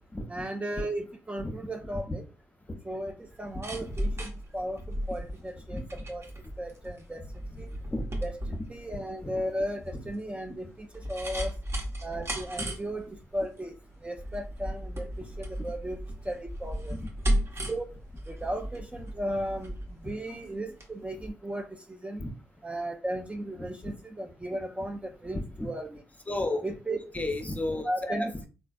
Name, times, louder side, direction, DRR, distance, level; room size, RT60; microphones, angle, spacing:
voice 1, 0.3-2.2 2.8-4.8 5.1-6.2 6.6-7.2 7.6-7.7 8.2-8.3 8.7-11.5 12.0-13.1 13.3-13.7 14.0-15.1 15.4-16.0 16.3-16.9 17.7-17.9 18.3-19.7 20.0-22.3 22.6-26.0 26.6-27.0 27.8-28.5, right 1 dB, 15° right, 5 dB, 0.5 m, -35 dB
sound 1, 3.3-20.9 21.2-21.3, equal, 40° right, 1.0 m, -35 dB
voice 2, 25.3-25.7 26.3-26.7 27.1-28.3, left 1 dB, 20° left, 6 dB, 0.7 m, -33 dB
3.2 x 2.5 x 2.3 m, 0.33 s
hypercardioid pair, 45°, 7 cm